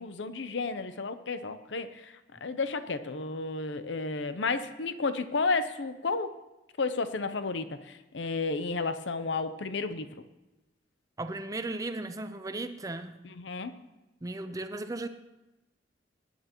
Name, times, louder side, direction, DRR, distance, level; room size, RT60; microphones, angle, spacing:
voice 1, 0.0-6.3 6.8-10.1 13.2-13.7, left 3 dB, 75° left, 11 dB, 0.7 m, -32 dB
voice 2, 11.2-13.1 14.2-15.1, right 2 dB, 20° right, 9 dB, 0.6 m, -36 dB
20.0 x 10.0 x 3.0 m, 1.0 s
head